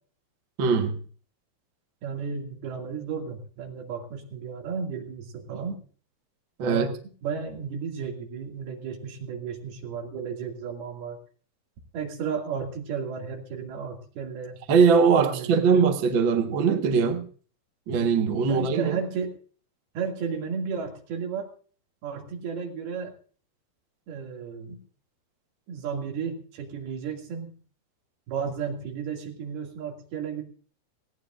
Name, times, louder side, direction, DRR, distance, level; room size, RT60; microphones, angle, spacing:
voice 1, 0.6-1.0 6.6-6.9 14.7-17.3 17.9-19.0, right 5 dB, 60° right, 1.3 m, -21 dB
voice 2, 2.0-5.8 6.6-6.9 7.2-11.2 11.9-14.6 15.2-15.9 18.5-19.3 19.9-21.5 22.0-23.1 24.1-24.8 25.7-27.5 28.3-30.4, right 6 dB, 75° right, 4.4 m, -33 dB
18.5 x 17.5 x 2.6 m
omnidirectional pair, 4.5 m